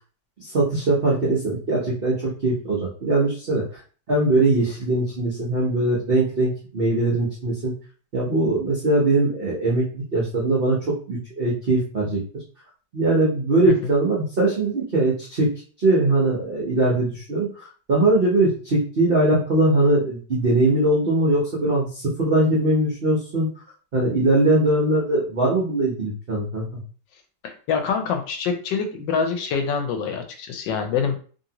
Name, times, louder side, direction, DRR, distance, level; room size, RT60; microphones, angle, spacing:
voice 1, 0.4-3.8 4.1-7.7 8.1-12.2 12.9-15.5 15.8-23.5 23.9-26.7, right 2 dB, 65° right, -4 dB, 0.5 m, -21 dB
voice 2, 27.4-31.2, left 6 dB, 75° left, 5 dB, 1.2 m, -25 dB
3.0 x 2.7 x 2.8 m, 0.41 s
omnidirectional pair, 2.1 m